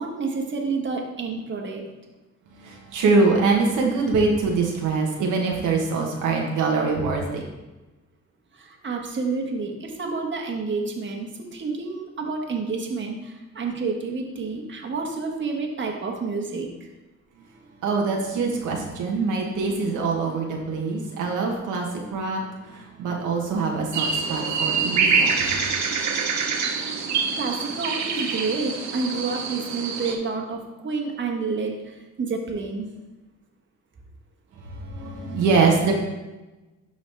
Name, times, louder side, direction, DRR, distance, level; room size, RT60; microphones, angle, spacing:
voice 1, 0.0-1.9 8.5-16.9 27.0-32.9, right 4 dB, 40° right, 1 dB, 1.4 m, -29 dB
voice 2, 2.5-7.4 17.6-25.8 34.6-35.9, right 4 dB, 85° right, 0 dB, 1.3 m, -24 dB
sound 1, 23.9-30.1, right 5 dB, 70° right, 1.0 m, -25 dB
12.0 x 4.0 x 3.4 m, 1.1 s
cardioid pair, 90°, 30 cm